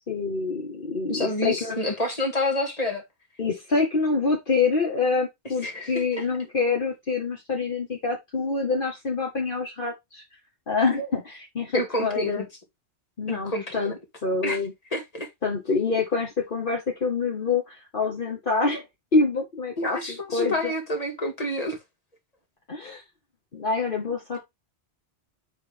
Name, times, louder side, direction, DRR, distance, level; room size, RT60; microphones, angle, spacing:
voice 1, 0.1-1.8 3.4-10.2 10.7-12.4 13.2-14.7 15.4-18.8 19.1-20.7 22.7-23.0 23.5-24.4, left 4 dB, 50° left, 1.5 m, -26 dB
voice 2, 1.1-3.0 5.6-6.3 11.7-12.5 13.3-14.0 14.4-14.6 14.9-15.3 19.8-21.8, left 1 dB, 35° left, 1.9 m, -28 dB
9.2 x 3.5 x 3.5 m
omnidirectional pair, 1.1 m